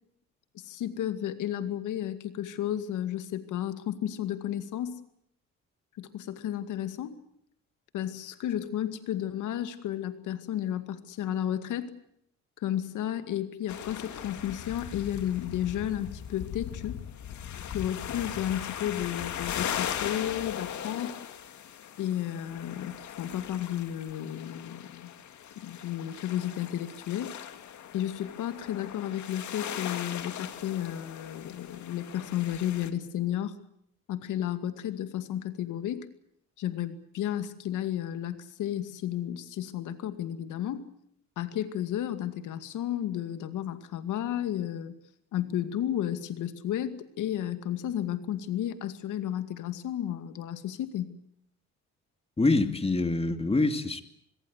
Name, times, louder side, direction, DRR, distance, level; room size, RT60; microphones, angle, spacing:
voice 1, 0.5-5.0 6.0-7.2 7.9-11.9 12.6-17.0 17.7-21.2 22.0-25.1 25.6-27.4 27.9-33.6 34.1-36.1 36.6-40.8 41.4-44.9 45.3-51.2, left 11 dB, 85° left, 2.3 m, -33 dB
sound 1, 13.7-32.9, left 9 dB, 70° left, 2.4 m, -39 dB
voice 2, 52.4-54.0, left 2 dB, 20° left, 2.5 m, -25 dB
25.5 x 21.5 x 8.2 m
cardioid pair, 90°, 30 cm